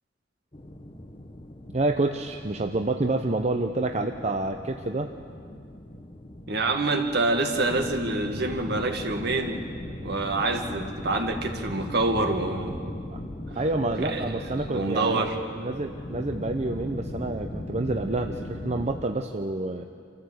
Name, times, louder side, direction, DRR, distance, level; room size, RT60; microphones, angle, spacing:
sound 1, 0.5-19.0, left 1 dB, 30° left, 1.1 m, -39 dB
voice 1, 1.7-5.1 13.1-13.2 13.5-15.3 15.6-19.9, right 2 dB, 35° right, 5 dB, 0.7 m, -28 dB
voice 2, 6.5-9.6 10.0-12.8 14.0-14.3 14.7-15.4, right 2 dB, 60° right, 4 dB, 2.1 m, -26 dB
27.0 x 14.5 x 8.2 m, 2.3 s
head